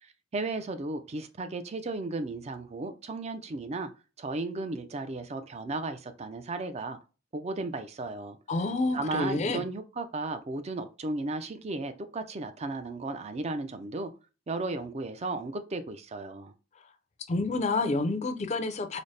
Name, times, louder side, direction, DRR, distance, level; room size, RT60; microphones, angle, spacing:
voice 1, 0.0-3.9 4.2-7.0 7.3-8.4 8.9-14.1 14.5-16.5, right 2 dB, 35° right, 0.4 m, -35 dB
voice 2, 8.5-9.6 17.3-19.0, left 3 dB, 35° left, 0.4 m, -28 dB
4.0 x 2.0 x 3.2 m
head